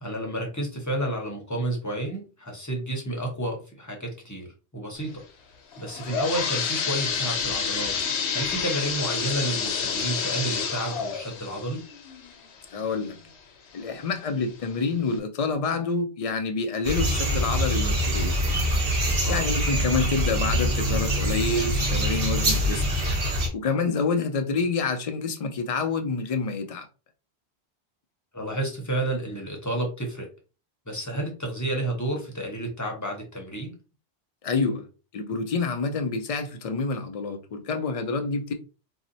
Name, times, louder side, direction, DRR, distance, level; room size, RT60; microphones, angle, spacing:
voice 1, 0.0-5.2 5.8-8.0 8.3-11.8 19.2-19.5 28.3-30.3 30.9-33.7, right 1 dB, 20° left, 0.7 m, -31 dB
sound 1, 5.7-13.3 13.8-13.9 14.6-14.7 15.1-15.2, left 6 dB, 90° left, 0.9 m, -29 dB
voice 2, 12.7-13.2 13.7-18.3 19.3-22.8 23.5-26.9 34.4-34.9 35.1-38.5, left 4 dB, 55° left, 0.4 m, -27 dB
sound 2, 16.8-23.5, equal, 60° right, 1.1 m, -24 dB
2.8 x 2.0 x 3.9 m
omnidirectional pair, 1.1 m